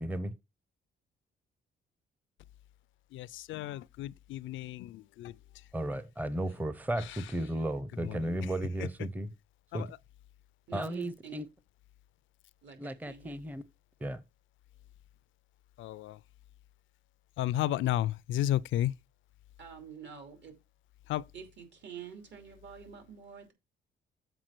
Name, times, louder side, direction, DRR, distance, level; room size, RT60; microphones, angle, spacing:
voice 1, 0.0-0.3 5.7-9.3 9.7-9.9 10.7-11.5 12.8-13.6 14.0-14.2, right 1 dB, 10° right, 0.6 m, -34 dB
voice 2, 3.1-5.3 7.0-7.2 8.0-8.4 8.8-8.9 9.7-9.9 15.8-16.2 17.4-18.9 21.1-21.2, left 13 dB, 75° left, 0.4 m, -33 dB
voice 3, 10.7-11.4 12.6-13.4 19.6-20.5 21.3-23.5, right 7 dB, 65° right, 2.9 m, -47 dB
7.8 x 4.7 x 5.9 m
cardioid pair, 90°, 20 cm